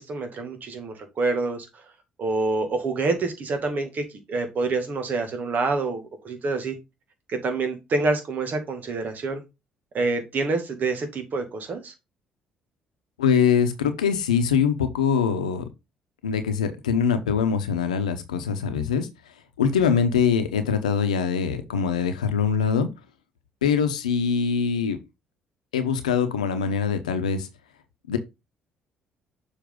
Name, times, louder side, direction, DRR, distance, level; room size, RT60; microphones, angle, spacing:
voice 1, 0.0-1.7 2.2-6.8 7.3-9.4 9.9-11.9, right 3 dB, 50° right, 2.1 m, -27 dB
voice 2, 13.2-15.6 16.2-19.1 19.6-22.9 23.6-25.0 25.7-27.5 28.1-28.2, left 6 dB, 90° left, 0.9 m, -23 dB
7.0 x 4.5 x 3.8 m
hypercardioid pair, 55°, 4 cm